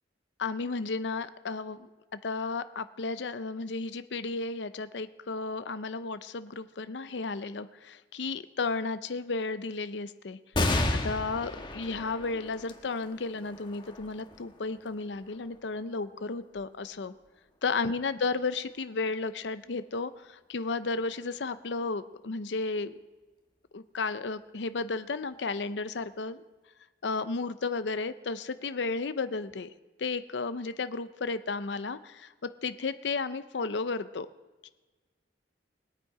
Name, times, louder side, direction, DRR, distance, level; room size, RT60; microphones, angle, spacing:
voice 1, 0.4-1.8 2.2-10.4 11.0-17.1 17.6-22.9 23.7-26.4 27.0-29.7 30.0-34.3 34.6-34.7, left 4 dB, 85° left, 12 dB, 0.6 m, -33 dB
sound 1, 10.5-17.4 18.0-18.1 19.3-19.8, left 2 dB, 25° left, 1.3 m, -34 dB
21.0 x 9.1 x 4.9 m, 1.2 s
head